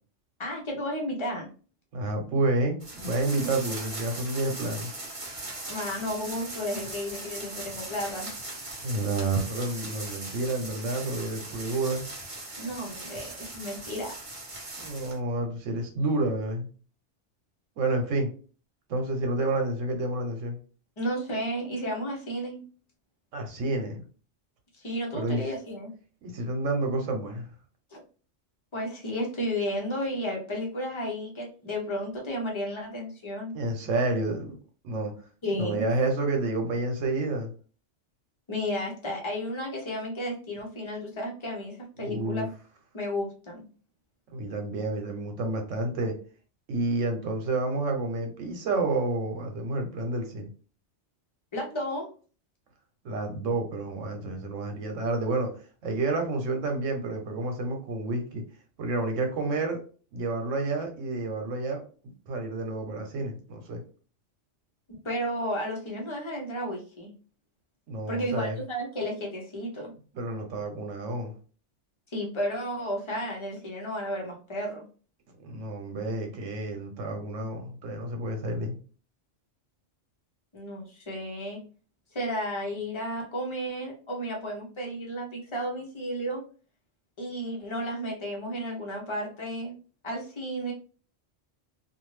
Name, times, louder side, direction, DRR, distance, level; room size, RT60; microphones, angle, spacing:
voice 1, 0.4-1.5 5.7-8.3 12.6-14.2 21.0-22.6 24.7-25.9 27.9-28.0 28.7-33.5 35.4-35.9 38.5-42.5 42.9-43.6 51.5-52.1 64.9-67.1 68.1-69.9 72.1-74.9 80.5-81.6 82.1-86.4 87.2-89.7 90.0-90.7, equal, 30° left, 0 dB, 0.7 m, -33 dB
voice 2, 1.9-4.9 8.8-12.1 14.8-16.7 17.8-18.3 18.9-20.6 23.3-24.0 25.1-25.5 26.2-27.5 33.5-34.5 34.8-35.1 35.5-37.5 42.0-42.5 44.3-46.1 46.7-50.5 53.0-55.5 55.8-58.4 58.8-59.8 60.1-61.8 62.3-63.8 67.9-68.6 70.1-71.3 75.4-78.8, right 2 dB, 90° right, 4 dB, 1.1 m, -29 dB
sound 1, 2.8-15.2, right 2 dB, 30° right, 0.8 m, -39 dB
2.6 x 2.4 x 3.1 m, 0.39 s
omnidirectional pair, 1.3 m